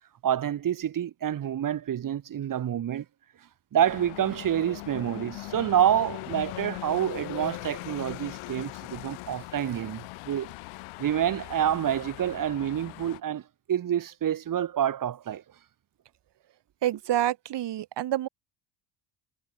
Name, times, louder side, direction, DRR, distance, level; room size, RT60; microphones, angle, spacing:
voice 1, 0.2-3.0 3.7-10.5 11.0-13.4 13.7-15.4, right 10 dB, 40° right, 1.5 m, -27 dB
sound 1, 3.9-13.2, left 22 dB, 80° left, 4.3 m, -40 dB
voice 2, 16.8-18.3, right 12 dB, 55° right, 3.9 m, -27 dB
supercardioid pair, 95°, 49 cm